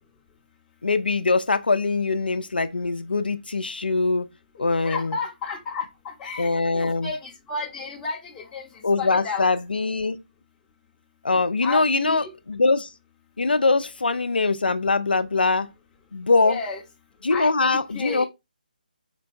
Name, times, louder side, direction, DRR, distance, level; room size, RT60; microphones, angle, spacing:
voice 1, 0.8-4.3 4.6-5.2 6.4-7.1 8.8-10.2 11.2-12.9 13.4-15.7 16.1-16.6 17.2-18.2, left 3 dB, 85° left, 0.3 m, -22 dB
voice 2, 4.6-9.5 11.6-12.3 16.4-16.8 17.3-17.5 17.9-18.3, left 4 dB, 10° left, 0.7 m, -32 dB
4.4 x 2.2 x 2.6 m
figure-of-eight pair, 150°, 5 cm